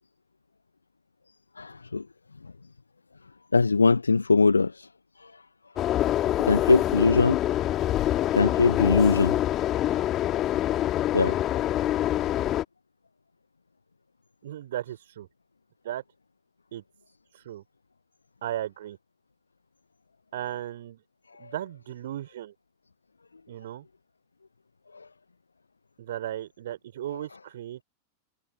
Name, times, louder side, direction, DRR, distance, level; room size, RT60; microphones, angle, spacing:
voice 1, 1.6-2.1 2.4-2.5 3.5-4.9 5.2-5.4 6.4-7.4 8.3-10.1 11.1-11.4 21.3-21.5 24.9-25.1 27.1-27.2, left 4 dB, 80° left, 0.7 m, -23 dB
sound 1, 5.8-12.6, left 13 dB, 30° left, 2.3 m, -25 dB
voice 2, 14.4-15.3 15.8-16.0 16.7-16.8 17.3-17.6 18.4-19.0 20.3-21.0 21.4-22.5 23.5-23.8 26.0-27.8, right 12 dB, 60° right, 3.2 m, -36 dB
figure-of-eight pair, 90°, 0 cm